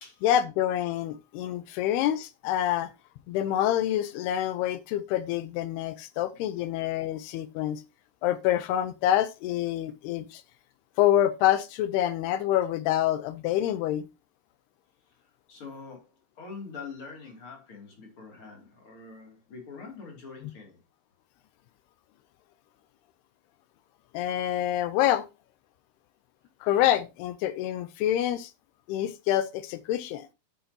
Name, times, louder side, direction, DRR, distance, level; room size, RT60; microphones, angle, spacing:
voice 1, 0.2-2.9 3.3-7.8 8.2-10.4 11.0-14.1 24.1-25.3 26.6-28.5 28.9-30.3, left 12 dB, 80° left, 2.6 m, -26 dB
voice 2, 15.5-20.8, left 4 dB, 35° left, 3.0 m, -44 dB
10.5 x 8.7 x 2.8 m
omnidirectional pair, 4.9 m